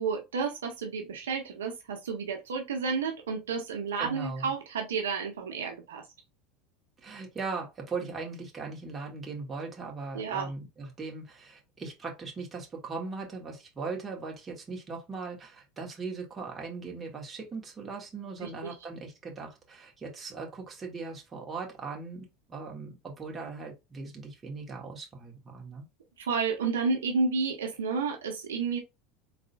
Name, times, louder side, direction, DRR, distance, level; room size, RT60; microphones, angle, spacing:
voice 1, 0.0-6.0 10.1-10.5 18.4-18.7 26.2-28.8, right 5 dB, 80° right, 0.8 m, -31 dB
voice 2, 4.0-4.5 7.0-25.9, right 4 dB, 25° right, 1.8 m, -39 dB
4.1 x 3.6 x 2.4 m
hypercardioid pair, 80°, 0 cm